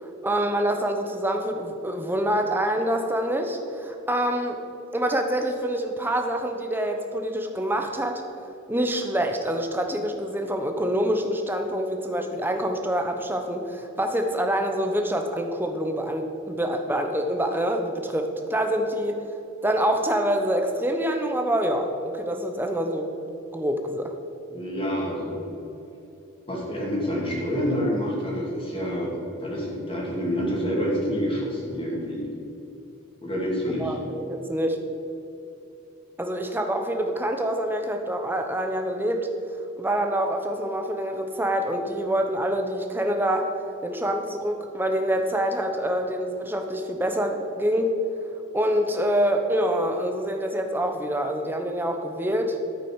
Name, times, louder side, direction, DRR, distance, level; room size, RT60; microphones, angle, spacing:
voice 1, 0.0-4.6 4.9-8.2 8.7-19.3 19.6-23.1 23.5-24.1 33.8-34.8 36.2-39.3 39.8-43.5 43.8-48.0 48.5-52.6, right 1 dB, 10° right, 4 dB, 0.9 m, -26 dB
voice 2, 24.5-25.5 26.5-32.3 33.2-33.9, equal, 25° left, -3 dB, 2.7 m, -27 dB
12.5 x 8.6 x 4.8 m, 2.9 s
head